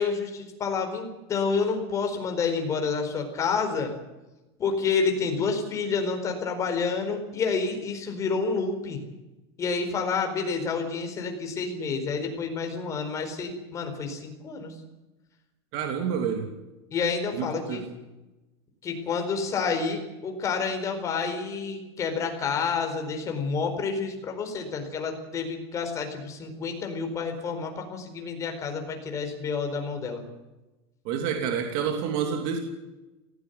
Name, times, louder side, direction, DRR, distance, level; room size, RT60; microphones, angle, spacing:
voice 1, 0.0-3.9 4.6-9.0 9.6-14.7 16.9-17.8 18.8-30.2, left 5 dB, 25° left, 5 dB, 4.5 m, -29 dB
voice 2, 15.7-16.5 17.3-17.9 31.0-32.6, right 7 dB, 50° right, 4 dB, 3.1 m, -28 dB
18.0 x 17.0 x 9.5 m, 1.0 s
supercardioid pair, 165°, 13 cm